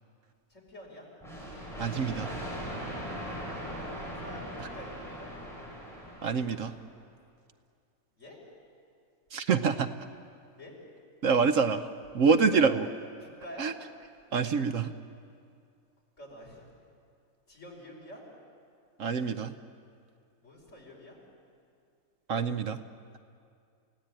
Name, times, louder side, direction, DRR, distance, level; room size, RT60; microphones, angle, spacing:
voice 1, 0.5-1.1 3.5-5.3 8.2-8.4 10.6-10.7 12.5-12.7 13.2-13.7 16.2-16.6 17.5-18.2 20.4-21.2, equal, 55° left, -2 dB, 5.7 m, -47 dB
sound 1, 1.2-6.8, equal, ahead, 7.2 m, -39 dB
voice 2, 1.8-2.3 4.6-4.7 6.2-6.7 9.3-9.9 11.2-11.9 12.1-12.9 13.6-13.7 14.3-14.9 19.0-19.5 22.3-22.8, right 5 dB, 65° right, 9 dB, 1.1 m, -26 dB
29.0 x 16.5 x 8.9 m, 2.3 s
omnidirectional pair, 1.5 m